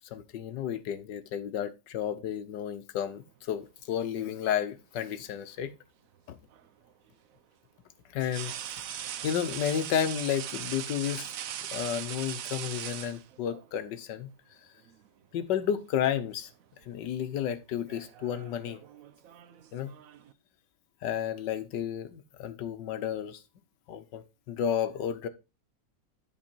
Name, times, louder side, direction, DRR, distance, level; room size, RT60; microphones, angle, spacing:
voice 1, 0.0-5.7 6.3-6.4 8.1-8.5 9.2-11.3 11.7-14.3 15.3-16.5 16.9-18.8 19.7-19.9 21.0-23.4 23.9-25.3, left 9 dB, 85° left, 1.5 m, -32 dB
sound 1, 3.9-4.8 6.5-6.7 8.2-13.7 14.9-15.1 15.5-16.2 16.5-16.9 17.7-20.3, right 10 dB, 65° right, 0.9 m, -40 dB
10.5 x 4.5 x 4.4 m
omnidirectional pair, 1.9 m